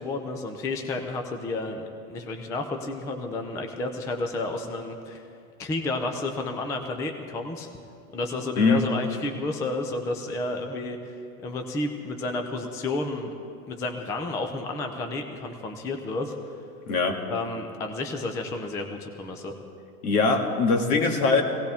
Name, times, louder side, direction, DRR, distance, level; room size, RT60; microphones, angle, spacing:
voice 1, 0.0-5.2 5.6-7.7 8.1-13.3 13.7-16.4 17.3-19.6, left 2 dB, 10° left, 5 dB, 0.3 m, -31 dB
voice 2, 16.9-17.2 20.0-21.4, left 4 dB, 75° left, 3 dB, 2.0 m, -22 dB
20.0 x 17.5 x 3.5 m, 2.5 s
supercardioid pair, 130°, 46 cm